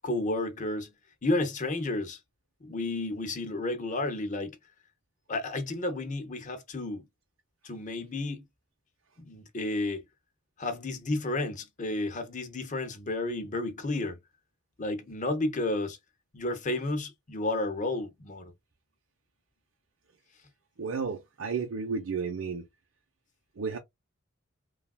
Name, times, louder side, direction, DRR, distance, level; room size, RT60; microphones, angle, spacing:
voice 1, 0.0-0.9 1.2-2.2 2.6-4.6 5.3-7.1 7.6-8.4 9.2-10.0 10.6-14.2 14.8-16.0 16.3-18.5, left 2 dB, 40° left, 0.7 m, -31 dB
voice 2, 20.8-22.7 23.6-23.8, right 5 dB, 85° right, 0.6 m, -32 dB
3.3 x 2.4 x 2.3 m
head